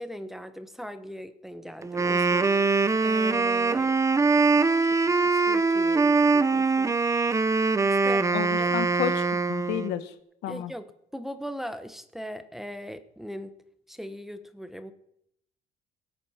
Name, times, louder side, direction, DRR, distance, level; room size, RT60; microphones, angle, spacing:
voice 1, 0.0-4.0 4.6-7.0 7.9-8.7 10.5-13.5 13.9-14.9, equal, ahead, 9 dB, 1.0 m, -40 dB
Wind instrument woodwind instrument, 1.8-10.0, right 4 dB, 20° right, 0.7 m, -23 dB
voice 2, 8.3-10.1 10.4-10.7, left 11 dB, 85° left, 11 dB, 1.2 m, -31 dB
18.0 x 8.4 x 5.8 m, 0.75 s
cardioid pair, 110°, 17 cm